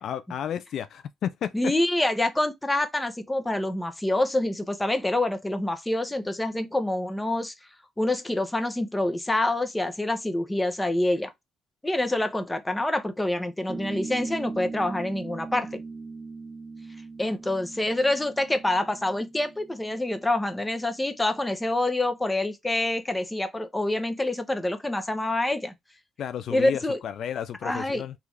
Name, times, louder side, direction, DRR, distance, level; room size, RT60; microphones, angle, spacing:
voice 1, 0.0-1.7 26.2-28.1, left 9 dB, 70° left, 0.3 m, -32 dB
voice 2, 1.5-7.5 8.0-11.3 11.8-15.8 17.2-25.7 26.5-27.0 27.6-28.0, left 1 dB, 10° left, 0.7 m, -26 dB
sound 1, 13.7-20.6, right 4 dB, 25° right, 0.3 m, -40 dB
3.5 x 2.4 x 3.1 m
cardioid pair, 90°, 0 cm